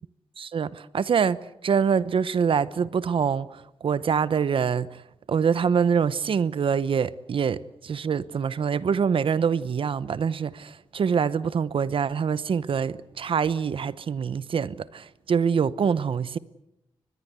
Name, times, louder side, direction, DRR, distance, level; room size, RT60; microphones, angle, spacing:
voice 1, 0.4-5.0 5.3-16.4, right 6 dB, 65° right, 0.9 m, -25 dB
24.0 x 21.0 x 8.2 m
cardioid pair, 90°, 10 cm